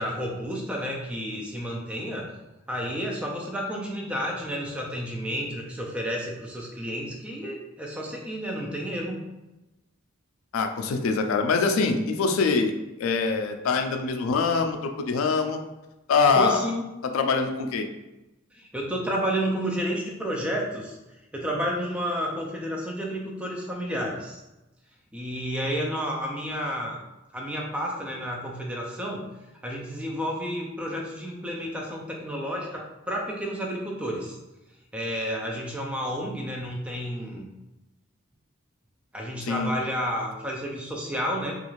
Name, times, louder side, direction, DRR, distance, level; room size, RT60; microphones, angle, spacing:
voice 1, 0.0-2.3 2.7-9.2 16.3-16.8 18.5-21.0 21.3-24.4 25.1-27.0 27.3-29.3 29.6-34.4 34.9-37.5 39.1-41.5, equal, 5° right, -1 dB, 0.3 m, -31 dB
voice 2, 10.5-12.7 13.0-15.6 16.1-16.6 17.0-17.9 39.4-39.7, left 4 dB, 85° left, 5 dB, 0.3 m, -24 dB
2.5 x 2.4 x 3.0 m, 0.99 s
head